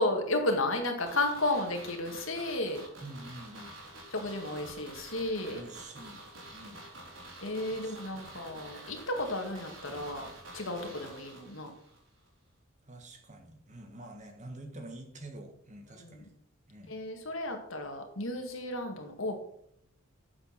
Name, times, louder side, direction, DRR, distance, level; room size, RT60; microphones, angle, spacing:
voice 1, 0.0-2.8 4.1-5.6 7.4-11.7 16.0-16.3 16.9-19.4, left 2 dB, 70° left, 4 dB, 2.1 m, -33 dB
sound 1, 1.0-12.0 12.3-12.4, right 1 dB, 65° right, 3.9 m, -48 dB
voice 2, 3.0-3.8 5.5-6.8 7.7-8.4 10.8-11.1 12.9-16.3 16.7-16.9, right 1 dB, 35° right, 4 dB, 1.8 m, -47 dB
9.2 x 7.4 x 6.0 m, 0.71 s
head